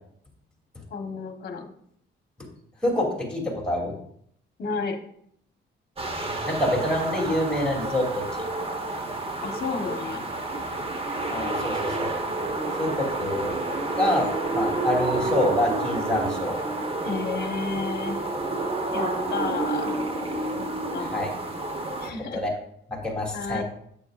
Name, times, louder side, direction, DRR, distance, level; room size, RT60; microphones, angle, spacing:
voice 1, 0.9-1.7 4.6-5.0 9.4-10.3 17.0-18.2 18.9-20.0 20.6-21.1 22.0-22.4 23.3-23.6, left 4 dB, 50° left, 5 dB, 1.3 m, -31 dB
voice 2, 2.8-4.0 6.5-8.5 11.3-12.1 12.8-13.6 14.0-16.6 21.1-21.3 22.3-22.5 22.9-23.6, left 1 dB, 5° left, -3 dB, 3.0 m, -26 dB
sound 1, 6.0-22.1, right 2 dB, 30° right, 1.2 m, -29 dB
9.0 x 7.8 x 2.5 m, 0.68 s
cardioid pair, 90°, 20 cm